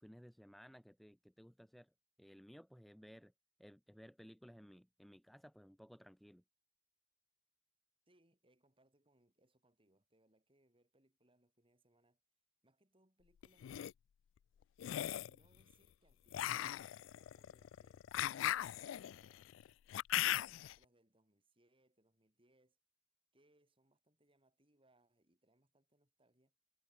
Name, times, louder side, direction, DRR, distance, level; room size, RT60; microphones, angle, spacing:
voice 1, 0.0-1.9 2.2-3.3 3.6-6.4, equal, ahead, 0.4 m, -58 dB
voice 2, 8.1-12.2 12.6-13.7 15.3-19.7 20.2-22.8 23.3-26.5, right 1 dB, 25° right, 6.7 m, -75 dB
sound 1, 13.4-13.9 14.8-15.4 16.3-20.7, left 12 dB, 75° left, 0.3 m, -38 dB
head